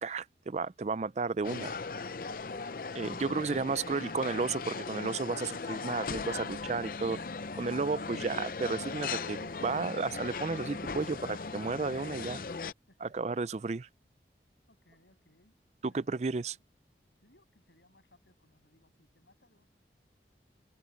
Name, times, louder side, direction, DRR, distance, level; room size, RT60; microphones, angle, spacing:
voice 1, 0.0-1.8 2.9-7.2 7.5-12.4 13.0-13.9 15.8-16.6, right 4 dB, 40° right, 0.4 m, -33 dB
sound 1, 1.4-12.7, left 4 dB, 50° left, 0.6 m, -38 dB
voice 2, 14.7-15.5 15.8-16.2 16.5-16.6 17.2-19.7, left 1 dB, 80° left, 7.2 m, -66 dB
head